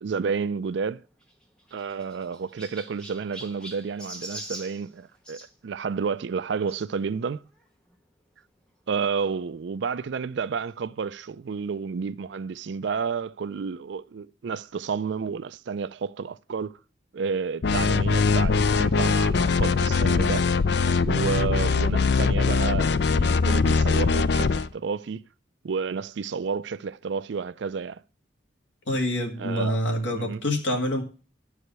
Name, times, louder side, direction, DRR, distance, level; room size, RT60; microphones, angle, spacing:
voice 1, 0.0-1.0 1.7-7.4 8.9-16.7 17.1-20.5 21.0-25.2 25.6-28.0 29.4-29.8 30.1-30.4, right 5 dB, 70° right, 0.4 m, -31 dB
Chirp tweet, 1.2-5.5 6.7-6.9 7.6-7.7 7.9-8.0 9.2-9.3, right 1 dB, 5° left, 1.3 m, -43 dB
sound 1, 17.6-24.7, left 4 dB, 60° left, 0.4 m, -22 dB
voice 2, 28.9-31.0, left 1 dB, 75° left, 2.0 m, -26 dB
12.0 x 4.8 x 6.7 m
head